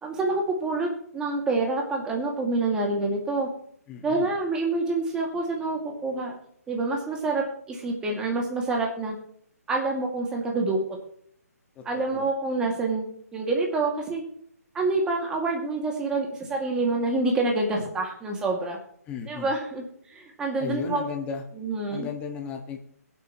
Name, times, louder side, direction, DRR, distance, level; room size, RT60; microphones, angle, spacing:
voice 1, 0.0-3.5 4.0-6.3 6.7-9.2 9.7-10.8 11.9-13.0 13.3-14.2 14.7-18.8 19.3-19.8 20.1-21.0 21.6-22.1, right 3 dB, 10° right, 1 dB, 2.2 m, -27 dB
voice 2, 3.9-4.3 11.7-12.2 19.0-19.5 20.6-21.4 21.9-22.8, left 6 dB, 15° left, 2 dB, 1.5 m, -35 dB
22.0 x 8.1 x 3.1 m, 0.64 s
hypercardioid pair, 160°, 9 cm